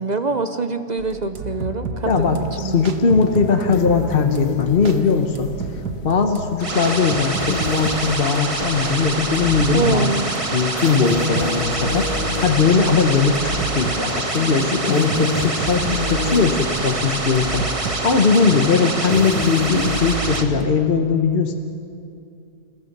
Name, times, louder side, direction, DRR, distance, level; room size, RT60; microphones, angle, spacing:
voice 1, 0.0-2.8 9.7-10.3, right 4 dB, 50° right, 9 dB, 0.5 m, -24 dB
sound 1, 1.0-20.7, right 4 dB, 90° right, 1.9 m, -32 dB
voice 2, 2.1-5.5 6.0-10.1 10.5-21.5, left 5 dB, 40° left, 5 dB, 1.1 m, -19 dB
sound 2, 2.2-2.7 3.2-9.1 9.6-9.7 10.2-13.1 14.0-14.2 14.6-20.4, left 7 dB, 60° left, 1.4 m, -29 dB
sound 3, 6.6-20.4, right 2 dB, 20° right, 1.2 m, -26 dB
28.5 x 15.0 x 6.7 m, 2.5 s
omnidirectional pair, 1.7 m